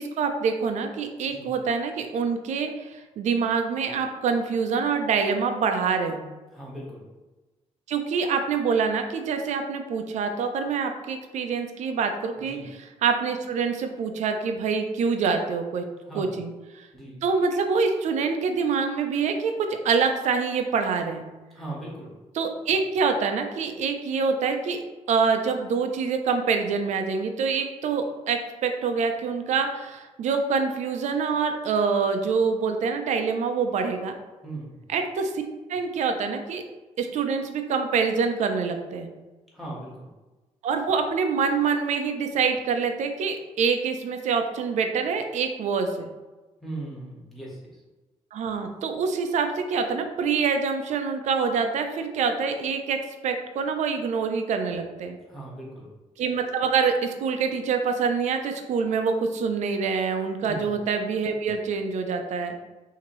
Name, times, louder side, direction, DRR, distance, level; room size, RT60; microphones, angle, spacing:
voice 1, 0.0-6.2 7.9-15.8 16.1-16.5 17.2-21.2 22.3-24.8 25.1-34.1 34.9-35.4 35.7-36.6 37.0-39.1 40.6-46.1 48.3-53.0 53.2-55.2 56.2-62.5, right 5 dB, 70° right, 6 dB, 0.6 m, -26 dB
voice 2, 6.5-7.0 12.4-12.6 16.0-16.3 16.9-17.2 21.5-22.1 34.4-34.8 39.5-40.1 46.6-47.6 55.3-55.9 60.4-60.7, right 2 dB, ahead, -5 dB, 1.4 m, -38 dB
5.9 x 2.9 x 3.1 m, 1.2 s
cardioid pair, 155°, 12 cm